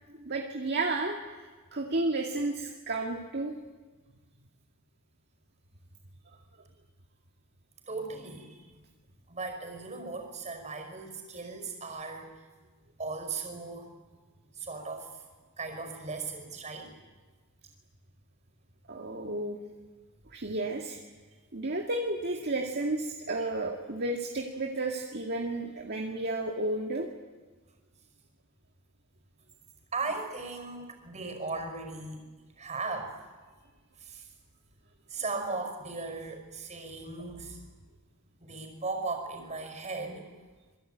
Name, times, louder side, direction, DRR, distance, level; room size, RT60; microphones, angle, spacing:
voice 1, 0.2-3.5 18.9-19.6 20.3-21.0 21.5-27.1, right 2 dB, 50° right, 1 dB, 2.0 m, -32 dB
voice 2, 7.9-8.6 9.3-12.3 13.0-13.9 14.6-15.1 15.6-16.9 29.9-32.2 32.6-33.2 34.0-34.3 35.1-37.6 38.4-40.3, right 3 dB, 30° right, 6 dB, 5.3 m, -37 dB
26.5 x 22.0 x 9.3 m, 1.3 s
head